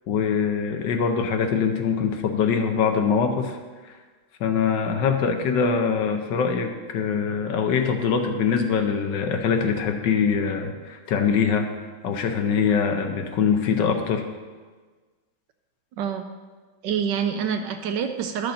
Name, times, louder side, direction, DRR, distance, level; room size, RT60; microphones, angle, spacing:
voice 1, 0.1-3.6 3.9-4.0 4.4-11.7 12.0-14.2, left 6 dB, 70° left, 5 dB, 1.4 m, -23 dB
voice 2, 16.8-18.5, right 7 dB, 75° right, 7 dB, 1.2 m, -26 dB
11.5 x 6.5 x 4.2 m, 1.4 s
omnidirectional pair, 2.1 m